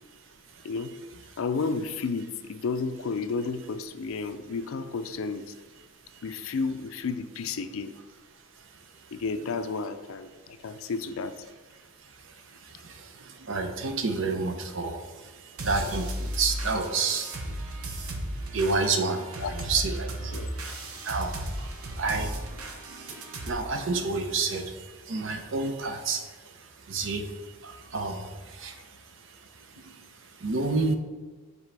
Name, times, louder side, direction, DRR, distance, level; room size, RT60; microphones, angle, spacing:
voice 1, 1.4-5.5 6.2-7.9 9.1-11.4 19.4-19.5 20.3-20.5, left 4 dB, 70° left, 10 dB, 0.4 m, -32 dB
voice 2, 8.6-9.1 12.0-17.8 18.0-18.1 18.4-30.9, right 3 dB, 60° right, 6 dB, 0.6 m, -31 dB
sound 1, 15.6-23.5, right 1 dB, 85° right, 0.9 m, -35 dB
7.2 x 4.1 x 3.4 m, 1.3 s
head